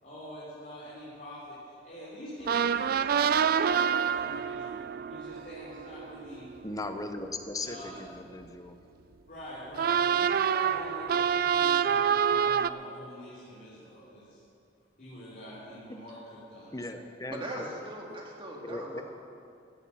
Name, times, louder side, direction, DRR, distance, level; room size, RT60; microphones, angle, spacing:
voice 1, 0.0-6.5 7.6-8.0 9.3-14.4 15.0-16.9, equal, 45° left, -8 dB, 3.4 m, -45 dB
sound 1, 2.5-7.2 9.8-12.7, right 7 dB, 50° right, 0.3 m, -27 dB
voice 2, 6.6-8.8 15.9-16.0 16.7-17.6 18.6-19.0, left 2 dB, 20° left, 7 dB, 0.7 m, -38 dB
voice 3, 17.3-19.0, right 1 dB, 30° right, -1 dB, 2.0 m, -39 dB
15.0 x 8.9 x 7.1 m, 2.5 s
head